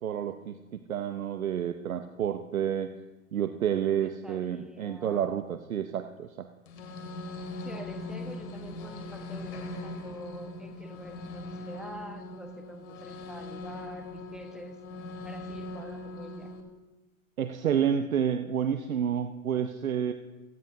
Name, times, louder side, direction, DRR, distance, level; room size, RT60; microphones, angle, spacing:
voice 1, 0.0-2.9 3.3-6.5 17.4-20.1, right 9 dB, 75° right, 9 dB, 0.9 m, -29 dB
voice 2, 4.0-5.3 7.6-14.8 15.2-16.5, equal, ahead, 5 dB, 1.2 m, -46 dB
sound 1, 6.7-16.6, left 2 dB, 55° left, 2.4 m, -40 dB
17.0 x 15.0 x 2.8 m, 1.1 s
hypercardioid pair, 110°, 42 cm